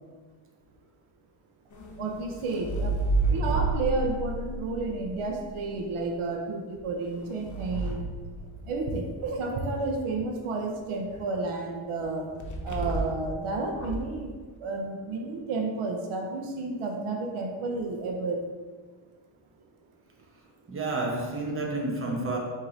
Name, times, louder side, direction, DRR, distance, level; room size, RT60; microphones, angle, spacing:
sound 1, 1.7-5.8 6.8-9.1 12.4-13.3 13.7-14.2, right 2 dB, 35° left, 0.8 m, -31 dB
voice 1, 2.0-3.0 3.3-8.0 8.6-12.3 12.6-18.4, right 3 dB, 80° right, 2 dB, 0.7 m, -31 dB
voice 2, 20.7-22.4, right 2 dB, 25° right, -1 dB, 0.9 m, -30 dB
4.7 x 2.8 x 3.8 m, 1.4 s
cardioid pair, 95°, 49 cm